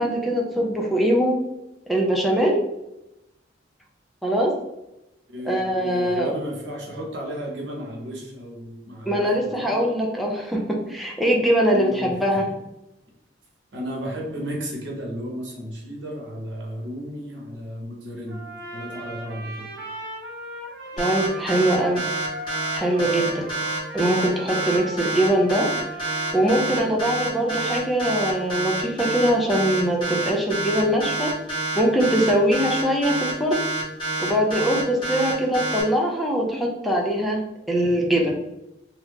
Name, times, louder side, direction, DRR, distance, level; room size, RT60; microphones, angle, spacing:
voice 1, 0.0-1.4 1.9-2.6 4.2-4.5 5.5-6.3 9.1-12.4 21.0-22.0 22.7-23.5 23.9-25.7 26.3-31.3 31.7-33.6 34.2-37.4 37.7-38.3, equal, ahead, -2 dB, 0.4 m, -22 dB
voice 2, 5.3-9.8 11.7-12.6 13.7-18.4 18.7-19.7, equal, 80° right, -2 dB, 1.0 m, -34 dB
Trumpet, 18.3-26.6, right 1 dB, 65° right, 1.0 m, -38 dB
sound 1, 21.0-35.8, right 2 dB, 25° left, 1.3 m, -27 dB
2.8 x 2.4 x 3.4 m, 0.89 s
head